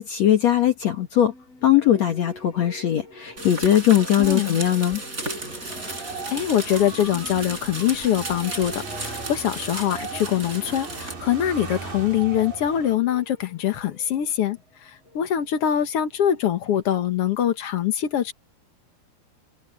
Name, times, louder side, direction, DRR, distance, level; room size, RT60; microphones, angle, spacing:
voice 1, 0.0-1.3 1.6-5.0, left 11 dB, 60° left, 1.9 m, -20 dB
sound 1, 1.2-16.8, left 2 dB, 35° left, 8.7 m, -46 dB
sound 2, 3.4-11.1, right 2 dB, 20° right, 5.4 m, -35 dB
voice 2, 4.2-4.6 6.3-18.3, left 10 dB, 75° left, 1.3 m, -24 dB
sound 3, 5.2-13.0, right 4 dB, 55° right, 7.2 m, -38 dB
omnidirectional pair, 4.7 m